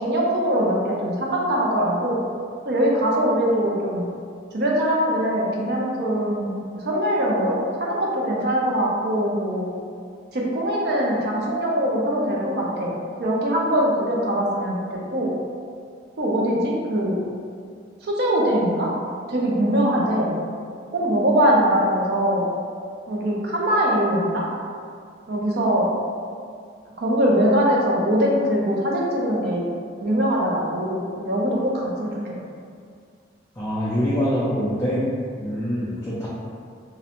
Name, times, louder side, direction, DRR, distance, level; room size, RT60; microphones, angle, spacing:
voice 1, 0.0-2.2 2.6-4.1 4.5-9.7 10.3-12.9 13.2-15.3 16.2-17.2 18.0-18.9 19.3-20.4 20.9-22.5 23.1-24.4 25.3-25.9 27.0-29.7 30.0-32.3, equal, 55° right, -3 dB, 0.5 m, -22 dB
voice 2, 33.6-35.0 35.4-36.3, equal, 15° left, -10 dB, 0.3 m, -24 dB
2.5 x 2.0 x 2.9 m, 2.2 s
head